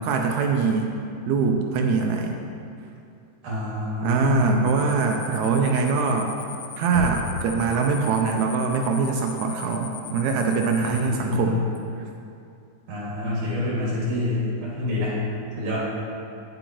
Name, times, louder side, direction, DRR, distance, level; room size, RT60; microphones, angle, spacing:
voice 1, 0.0-0.9 1.3-2.4 4.0-6.3 6.8-11.6, right 5 dB, 80° right, 2 dB, 1.7 m, -23 dB
voice 2, 3.4-4.7 10.8-11.5 12.9-15.2 15.6-15.8, left 2 dB, 55° right, -7 dB, 3.2 m, -27 dB
sound 1, 4.7-11.1, left 9 dB, 80° left, 2.1 m, -39 dB
Knock, 6.9-7.8, equal, 60° left, 2.9 m, -32 dB
9.0 x 7.8 x 3.0 m, 2.5 s
omnidirectional pair, 3.7 m